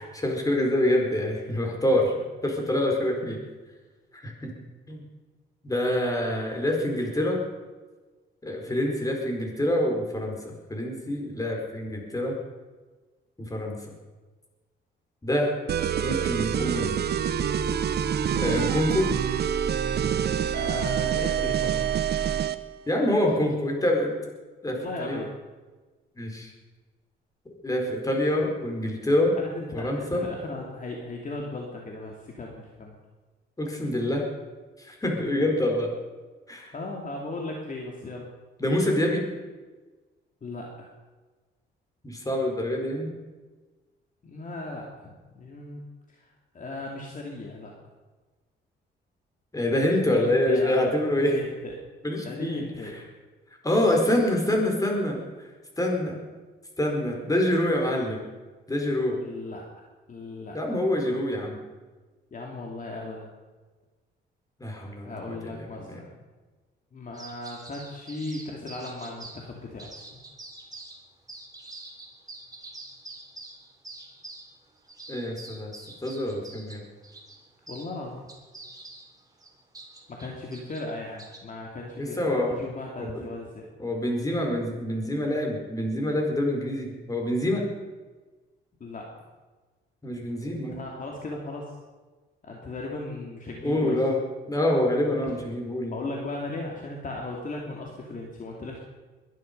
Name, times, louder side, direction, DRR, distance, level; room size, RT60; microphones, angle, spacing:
voice 1, 0.2-2.1 2.4-3.4 4.1-4.5 4.9-5.0 5.6-7.4 8.4-12.3 13.4-13.8 15.2-15.5 16.0-17.0 18.4-19.1 22.9-24.2 24.6-25.2 26.2-26.5 27.6-29.3 29.7-30.2 33.6-34.2 34.8-35.9 36.5-36.7 38.6-39.2 42.0-43.1 49.5-51.4 52.0-53.0 53.6-55.2 55.8-56.2 56.8-58.2 58.7-59.2 60.5-61.6 64.6-66.0 75.1-75.7 76.0-76.8 82.0-82.6 83.0-83.2 83.8-87.6 90.0-90.8 93.6-94.2 94.5-95.9, left 1 dB, 15° left, 1 dB, 4.9 m, -26 dB
voice 2, 8.7-9.0 20.5-21.9 24.7-25.3 29.4-33.0 35.1-35.3 36.7-38.3 40.4-40.9 44.2-45.8 46.1-46.2 46.5-47.7 50.1-50.9 51.2-51.8 52.2-53.0 59.2-59.8 60.1-60.6 62.3-63.3 65.0-66.1 66.9-69.9 77.7-78.2 80.1-83.7 88.8-89.1 90.5-91.6 92.4-94.0 95.9-98.8, left 2 dB, 40° left, 0 dB, 2.7 m, -37 dB
sound 1, 15.7-22.6, right 8 dB, 55° right, 0.9 m, -26 dB
sound 2, 67.1-69.4 69.8-71.0 71.3-77.9 78.3-81.4, right 2 dB, 20° right, 3.5 m, -45 dB
22.0 x 11.5 x 5.5 m, 1.3 s
cardioid pair, 90°, 20 cm